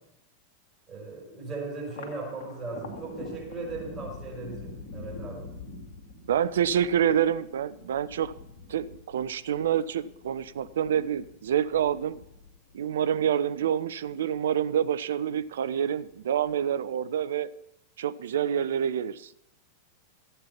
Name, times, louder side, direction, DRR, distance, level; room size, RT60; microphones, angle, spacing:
voice 1, 0.9-5.5, right 3 dB, 20° right, -2 dB, 5.9 m, -38 dB
Thunder, 1.8-14.5 14.9-15.7 16.0-16.9, left 3 dB, 55° left, 2.3 m, -45 dB
voice 2, 6.2-8.3 8.7-12.2 12.7-17.5 18.0-19.3, right 9 dB, 60° right, 15 dB, 0.5 m, -27 dB
14.5 x 8.7 x 5.8 m, 0.80 s
figure-of-eight pair, 90°, 0 cm